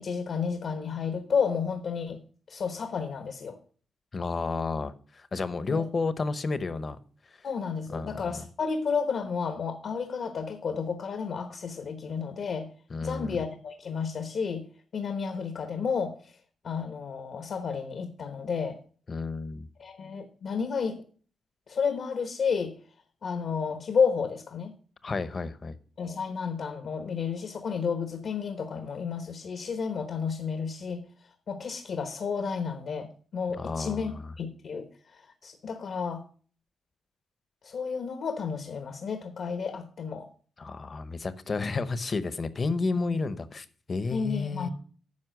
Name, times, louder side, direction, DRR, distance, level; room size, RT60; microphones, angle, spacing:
voice 1, 0.0-2.2 2.5-3.6 5.7-5.8 7.4-12.7 13.0-14.7 14.9-18.8 19.8-21.1 21.7-22.7 23.2-24.7 26.0-31.0 31.5-36.2 37.6-40.3 42.9-43.2 44.1-44.7, left 6 dB, 65° left, 1.1 m, -31 dB
voice 2, 4.1-7.0 7.9-8.2 12.9-13.3 19.1-19.7 25.0-25.8 33.6-34.0 40.6-44.7, left 4 dB, 45° left, 0.9 m, -31 dB
9.6 x 5.5 x 6.5 m
cardioid pair, 85°, 0 cm